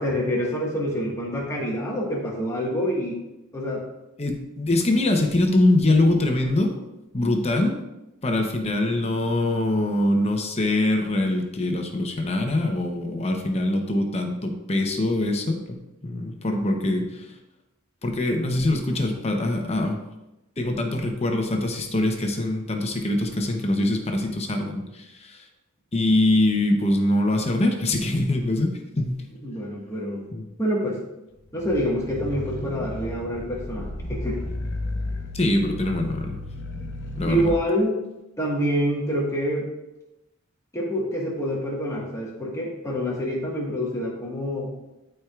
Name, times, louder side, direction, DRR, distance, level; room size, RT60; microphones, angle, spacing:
voice 1, 0.0-3.2 3.5-3.8 29.4-30.2 30.6-31.0 31.5-34.4 37.3-38.0 38.4-39.7 40.7-44.7, equal, 15° left, -4 dB, 1.5 m, -26 dB
voice 2, 4.2-6.8 7.1-7.8 8.2-17.3 18.0-20.0 20.6-25.4 25.9-29.3 30.3-30.5 35.3-36.4 37.2-37.5, left 1 dB, 30° left, 3 dB, 0.8 m, -23 dB
sound 1, 31.5-37.6, left 2 dB, 60° left, 0.8 m, -33 dB
12.0 x 4.5 x 2.4 m, 0.96 s
head